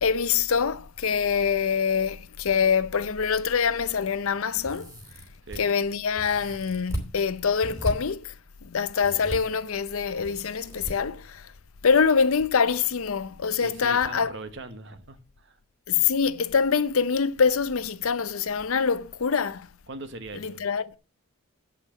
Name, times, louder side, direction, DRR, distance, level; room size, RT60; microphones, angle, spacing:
voice 1, 0.0-4.9 5.6-8.3 8.6-11.5 11.8-14.3 15.9-19.7 20.4-20.9, left 6 dB, 75° left, 0.6 m, -25 dB
sound 1, 4.6-5.6 6.2-7.1 7.6-7.9 9.0-9.4 10.2-10.9 12.1-12.5 12.7-12.8 14.0-14.1 14.5-14.6, equal, 15° right, 3.3 m, -35 dB
voice 2, 13.6-15.6 19.9-20.6, right 3 dB, 55° right, 1.2 m, -40 dB
8.5 x 5.7 x 7.2 m
head